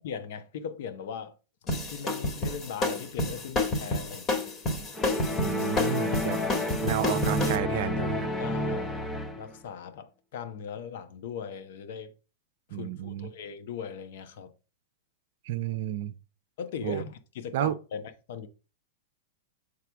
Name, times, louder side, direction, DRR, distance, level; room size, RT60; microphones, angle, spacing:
voice 1, 0.0-1.3 1.9-4.4 8.4-12.1 12.7-14.5 16.6-18.0 18.3-18.5, left 7 dB, 65° left, 1.1 m, -39 dB
sound 1, 1.7-7.6, left 2 dB, 30° left, 1.8 m, -29 dB
sound 2, 5.0-9.6, left 1 dB, 15° left, 0.8 m, -30 dB
voice 2, 5.4-6.4 6.8-8.3 12.7-13.3 15.4-16.1 16.8-17.0 17.5-17.7, right 13 dB, 65° right, 0.5 m, -31 dB
6.7 x 4.7 x 3.4 m
hypercardioid pair, 120°, 0 cm